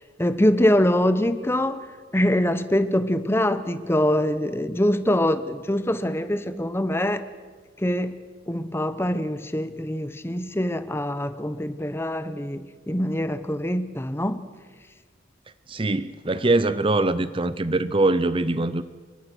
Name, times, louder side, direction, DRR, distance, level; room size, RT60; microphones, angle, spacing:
voice 1, 0.2-1.8 2.1-7.2 7.8-8.2 8.5-14.5, left 1 dB, 10° left, 1.0 m, -24 dB
voice 2, 15.7-18.8, right 2 dB, 25° right, 0.7 m, -23 dB
28.5 x 24.0 x 6.3 m
head